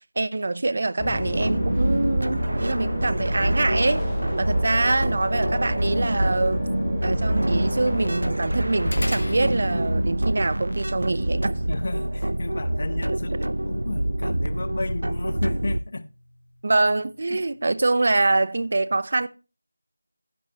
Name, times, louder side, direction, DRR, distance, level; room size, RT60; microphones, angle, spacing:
voice 1, 0.2-4.1 4.4-6.6 7.0-11.6 16.6-19.3, right 2 dB, 45° right, 0.7 m, -24 dB
sound 1, 1.0-10.0, left 1 dB, 15° left, 1.6 m, -32 dB
sound 2, 1.3-15.8, right 1 dB, 80° right, 0.6 m, -26 dB
sound 3, 8.9-17.5, left 1 dB, 70° left, 1.8 m, -39 dB
voice 2, 11.7-16.1 17.3-17.4, left 2 dB, 40° left, 0.8 m, -33 dB
15.5 x 6.4 x 3.0 m
figure-of-eight pair, 170°, 0 cm